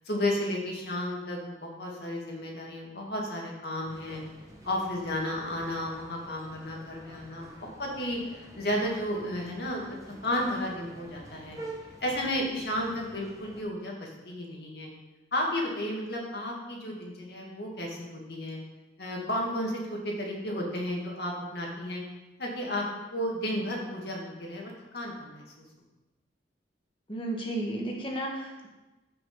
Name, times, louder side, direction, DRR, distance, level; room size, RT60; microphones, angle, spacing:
voice 1, 0.0-4.2 4.6-7.5 7.8-11.6 12.0-14.9 15.3-18.6 19.0-22.0 22.4-22.9 23.1-25.5, left 1 dB, 65° left, -1 dB, 2.4 m, -33 dB
sound 1, 3.8-13.6, right 1 dB, 20° right, 1.3 m, -48 dB
voice 2, 27.1-28.7, right 1 dB, 30° left, 0 dB, 1.6 m, -33 dB
14.5 x 5.9 x 4.0 m, 1.1 s
head